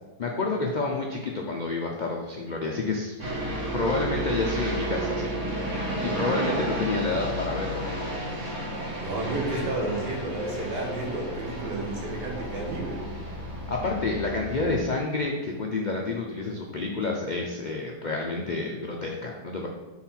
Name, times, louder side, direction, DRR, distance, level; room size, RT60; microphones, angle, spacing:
voice 1, 0.2-3.2 3.7-5.3 6.0-8.1 13.7-19.7, left 3 dB, 80° left, -1 dB, 0.4 m, -29 dB
sound 1, 3.2-14.8, right 1 dB, 50° right, 1.8 m, -32 dB
voice 2, 9.0-13.3, right 2 dB, 85° right, -1 dB, 2.0 m, -31 dB
4.5 x 4.2 x 5.7 m, 1.1 s
omnidirectional pair, 1.7 m